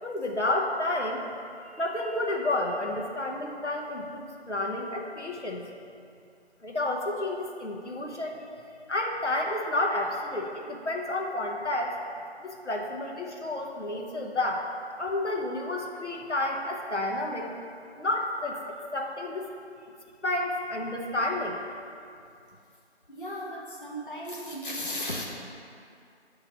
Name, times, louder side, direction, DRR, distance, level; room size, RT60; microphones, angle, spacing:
voice 1, 0.0-1.2 1.6-5.6 6.6-8.5 8.9-11.9 12.4-14.7 15.0-17.5 18.0-18.6 18.9-19.5 20.2-21.7, left 1 dB, 85° left, 0 dB, 1.0 m, -30 dB
voice 2, 23.1-25.2, left 1 dB, 50° left, -3 dB, 0.7 m, -35 dB
9.4 x 3.3 x 3.7 m, 2.5 s
figure-of-eight pair, 180°, 34 cm